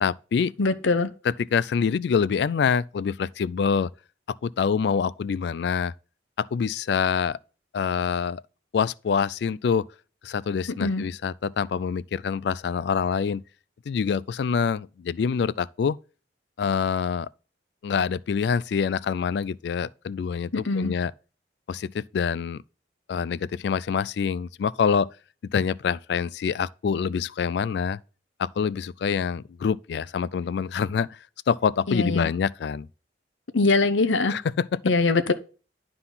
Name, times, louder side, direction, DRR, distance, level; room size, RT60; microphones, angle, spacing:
voice 1, 0.0-0.5 1.2-3.9 4.4-5.9 6.4-7.4 7.7-8.4 8.7-9.9 10.2-13.4 13.9-16.0 16.6-17.3 17.8-21.1 21.7-22.6 23.1-25.1 25.4-28.0 28.4-31.1 31.5-32.9 34.3-34.7, left 6 dB, 65° left, 0.3 m, -26 dB
voice 2, 0.6-1.1 10.8-11.1 20.5-20.9 31.9-32.3 33.5-34.3 34.8-35.3, left 3 dB, 85° left, 0.8 m, -22 dB
11.5 x 3.9 x 5.6 m
head